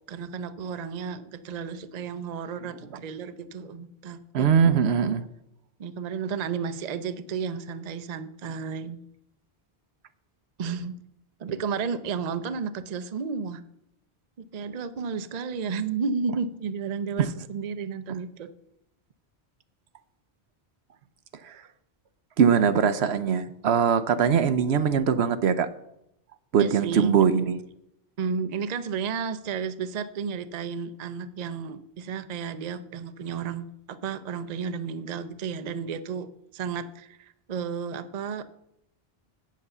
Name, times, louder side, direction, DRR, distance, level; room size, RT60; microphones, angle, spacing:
voice 1, 0.1-4.5 5.8-9.0 10.6-11.0 11.4-13.6 14.4-18.5 26.6-27.2 28.2-36.3 36.5-38.4, right 6 dB, 45° right, 12 dB, 0.6 m, -32 dB
voice 2, 4.3-5.2 17.2-17.3 21.4-21.6 22.4-25.7 26.5-27.6, right 7 dB, 75° right, 12 dB, 0.9 m, -22 dB
8.4 x 7.6 x 6.7 m, 0.80 s
omnidirectional pair, 1.1 m